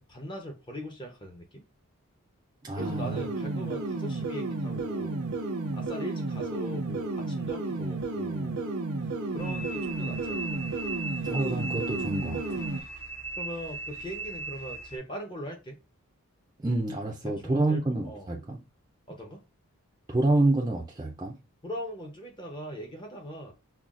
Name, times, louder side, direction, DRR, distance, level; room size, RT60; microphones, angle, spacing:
voice 1, 0.1-1.6 2.7-5.2 5.7-8.6 9.3-10.6 13.3-15.8 17.2-18.3 19.1-19.4 21.6-23.5, equal, 20° left, 0.7 m, -40 dB
voice 2, 2.6-3.3 11.2-12.7 16.6-18.6 20.1-21.3, right 2 dB, 20° right, 0.4 m, -28 dB
sound 1, 2.8-12.8, right 3 dB, 85° right, 0.7 m, -32 dB
sound 2, 9.4-15.0, right 3 dB, 90° left, 1.3 m, -38 dB
5.6 x 2.2 x 2.4 m
head